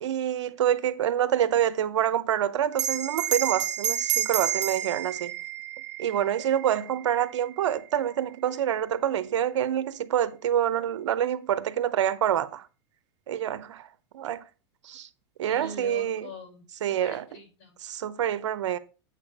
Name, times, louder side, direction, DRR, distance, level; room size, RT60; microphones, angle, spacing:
voice 1, 0.0-5.4 6.0-12.7 13.3-13.9 14.1-14.4 14.8-15.1 15.4-16.3 16.8-17.2 17.9-18.8, right 10 dB, 90° right, 0.8 m, -26 dB
Bell, 2.7-7.6, right 11 dB, 70° right, 1.3 m, -30 dB
voice 2, 15.5-17.7, left 3 dB, 65° left, 4.6 m, -43 dB
8.4 x 4.1 x 6.0 m
supercardioid pair, 125°, 15 cm